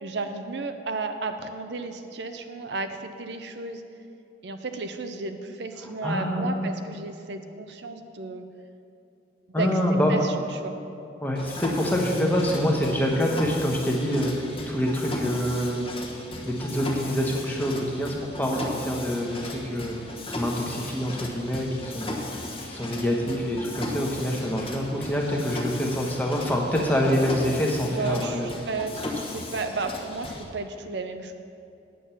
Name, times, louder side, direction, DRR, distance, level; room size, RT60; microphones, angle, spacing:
voice 1, 0.0-3.8 4.4-8.4 9.6-9.7 10.1-10.3 10.6-10.7 27.8-31.3, right 3 dB, 70° right, 7 dB, 0.6 m, -33 dB
voice 2, 5.8-6.6 9.5-10.2 11.2-15.9 16.4-20.0 20.3-28.5, equal, 10° left, -1 dB, 1.1 m, -26 dB
Mechanisms, 11.3-30.4, left 2 dB, 30° left, 1.2 m, -36 dB
9.3 x 7.6 x 5.7 m, 2.7 s
head